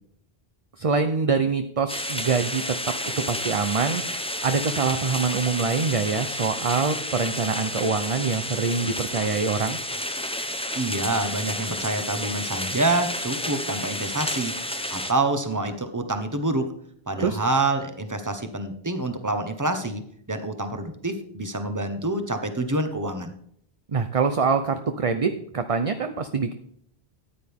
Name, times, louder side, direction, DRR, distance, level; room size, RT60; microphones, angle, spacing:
voice 1, 0.8-9.8 17.2-17.4 23.9-26.5, right 5 dB, 40° right, 8 dB, 0.7 m, -25 dB
sound 1, 1.9-15.1, left 1 dB, 5° left, 0.8 m, -31 dB
voice 2, 10.7-14.6 14.9-16.7 17.1-23.3, right 2 dB, 20° right, 8 dB, 1.1 m, -27 dB
14.0 x 9.9 x 3.6 m, 0.68 s
omnidirectional pair, 1.0 m